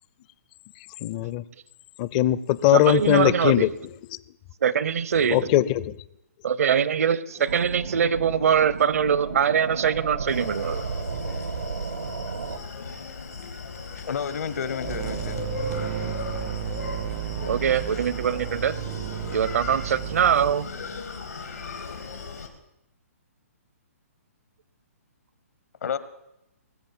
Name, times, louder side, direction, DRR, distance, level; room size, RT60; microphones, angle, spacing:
voice 1, 1.0-1.4 2.0-3.7 5.3-5.9, left 14 dB, 30° left, 18 dB, 0.5 m, -20 dB
voice 2, 2.7-3.7 4.6-5.4 6.4-10.8 17.5-18.8 19.3-20.7, right 8 dB, 65° right, 19 dB, 0.8 m, -23 dB
sound 1, 7.5-12.6, right 5 dB, 90° right, 1.6 m, -33 dB
Screaming, 10.3-22.5, left 4 dB, 90° left, 3.0 m, -37 dB
voice 3, 14.0-15.4 25.8-26.0, left 7 dB, 70° left, 14 dB, 1.3 m, -30 dB
sound 2, 14.8-20.5, right 15 dB, 30° right, 0.4 m, -33 dB
19.5 x 7.7 x 7.4 m, 0.87 s
hypercardioid pair, 150°, 8 cm